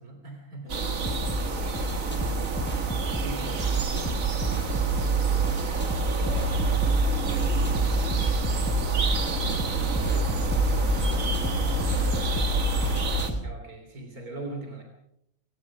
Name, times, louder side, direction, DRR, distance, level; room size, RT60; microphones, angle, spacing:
voice 1, 0.0-0.7 3.2-3.9 11.5-11.8 13.4-14.8, right 2 dB, 85° right, 4 dB, 3.7 m, -40 dB
voice 2, 0.6-2.4 4.5-10.5 11.0-12.4, equal, 40° right, 2 dB, 7.0 m, -46 dB
sound 1, 0.7-13.3, right 4 dB, 65° right, 2.0 m, -27 dB
sound 2, 1.0-13.5, right 2 dB, 5° left, 5.4 m, -32 dB
sound 3, 6.2-13.3, left 3 dB, 90° left, 3.0 m, -31 dB
26.0 x 17.5 x 6.0 m, 0.76 s
omnidirectional pair, 1.5 m